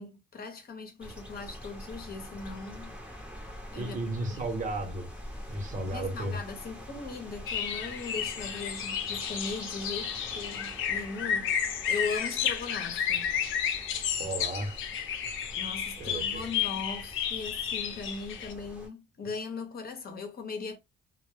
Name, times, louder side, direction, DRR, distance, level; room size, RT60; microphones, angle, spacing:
voice 1, 0.0-2.9 3.7-4.0 4.3-4.5 5.7-13.3 15.5-20.8, left 4 dB, 50° left, 0.9 m, -39 dB
sound 1, 1.0-18.9, equal, 5° right, 0.8 m, -45 dB
voice 2, 3.7-5.1 5.5-6.4 14.2-14.8 16.0-16.5, right 2 dB, 40° right, 0.9 m, -34 dB
sound 2, 7.5-18.5, left 8 dB, 85° left, 0.5 m, -32 dB
2.2 x 2.0 x 3.2 m
cardioid pair, 90°, 20 cm